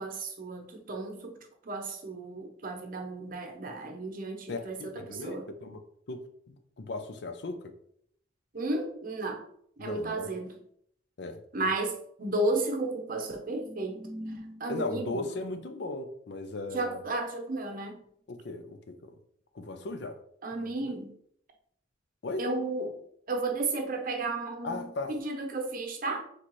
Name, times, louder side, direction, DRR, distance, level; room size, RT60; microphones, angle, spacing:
voice 1, 0.0-1.4 1.6-5.5 8.5-9.4 9.8-10.6 11.5-15.3 16.7-18.0 20.4-21.1 22.4-23.0 23.3-26.2, right 2 dB, 50° right, 0.7 m, -33 dB
voice 2, 4.5-7.7 9.8-10.3 11.2-11.4 14.7-17.0 18.3-19.1 19.5-20.2 20.8-20.9 22.2-22.4 24.6-25.1, left 2 dB, 65° left, 0.5 m, -37 dB
4.2 x 3.3 x 3.1 m
head